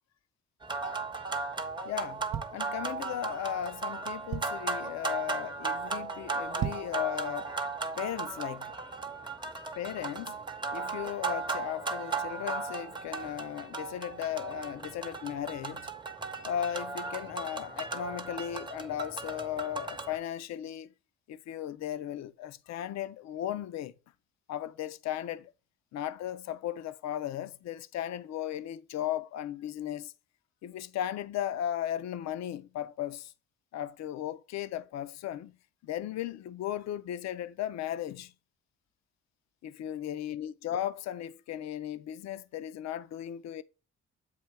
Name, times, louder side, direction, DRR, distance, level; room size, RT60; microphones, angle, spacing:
sound 1, 0.6-20.2, right 4 dB, 15° right, 0.7 m, -36 dB
voice 1, 1.8-7.5 8.0-8.8 9.8-10.4 10.7-15.9 16.4-20.9 21.3-23.9 24.5-25.5 25.9-30.1 30.6-33.3 33.7-35.6 35.8-38.3 39.6-43.6, left 11 dB, 60° left, 0.5 m, -36 dB
sound 2, 2.0-3.3 3.8-4.8 5.3-5.5 5.8-5.9 6.4-7.1 7.5-7.6, right 9 dB, 60° right, 0.6 m, -37 dB
8.1 x 2.7 x 4.5 m
cardioid pair, 90°, 30 cm